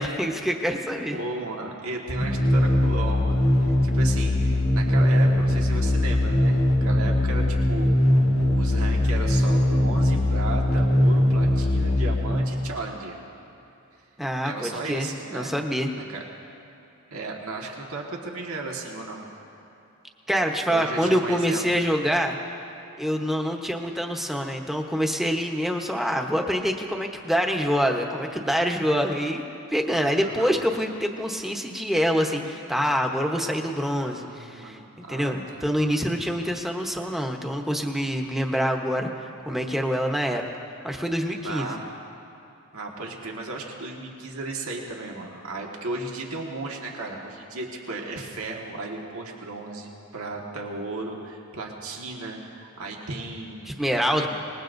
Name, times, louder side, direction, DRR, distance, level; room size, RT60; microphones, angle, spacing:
voice 1, 0.0-1.2 14.2-15.9 20.3-22.4 23.0-29.4 29.7-34.8 35.1-39.1 39.4-40.4 40.8-41.7 53.7-54.3, equal, ahead, 2 dB, 0.9 m, -26 dB
voice 2, 1.1-6.5 6.8-13.2 14.4-15.5 15.9-16.3 17.1-19.2 20.7-21.7 30.2-30.5 34.0-35.6 41.4-41.9 42.7-53.7 54.2-54.3, right 3 dB, 80° right, -1 dB, 1.6 m, -35 dB
sound 1, 2.1-12.8, left 1 dB, 90° left, 1.5 m, -21 dB
26.5 x 20.0 x 2.6 m, 2.7 s
head